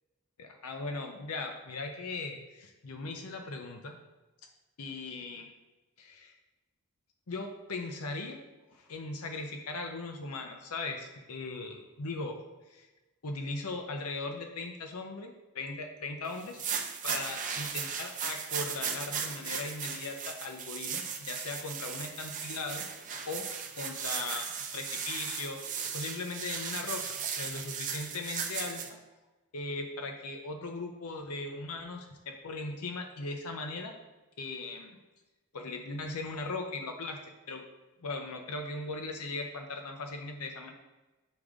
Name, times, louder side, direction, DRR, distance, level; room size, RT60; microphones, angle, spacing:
voice 1, 0.4-4.0 4.8-5.5 6.0-6.3 7.3-8.4 8.7-12.4 12.7-12.9 13.2-16.6 17.0-22.9 23.3-23.5 23.8-24.5 24.7-25.6 25.9-28.8 29.5-33.9 34.4-35.0 35.5-37.6 38.0-40.7, left 3 dB, 80° left, 4 dB, 0.7 m, -38 dB
sound 1, 16.4-28.9, right 6 dB, 35° right, 0.7 m, -37 dB
8.2 x 3.6 x 5.0 m, 1.1 s
head